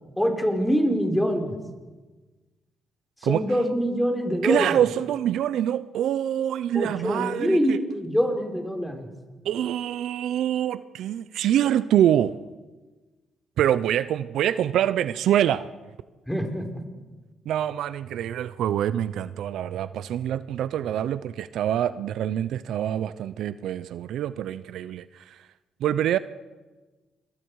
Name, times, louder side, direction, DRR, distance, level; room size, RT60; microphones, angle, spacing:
voice 1, 0.2-1.6 3.2-4.8 6.7-9.1 16.3-16.7, equal, 5° left, 3 dB, 4.2 m, -24 dB
voice 2, 4.4-7.8 9.4-12.3 13.6-15.7 17.5-25.3 25.8-26.2, right 11 dB, 80° right, 15 dB, 0.6 m, -25 dB
28.0 x 22.5 x 4.8 m, 1.3 s
cardioid pair, 90°, 0 cm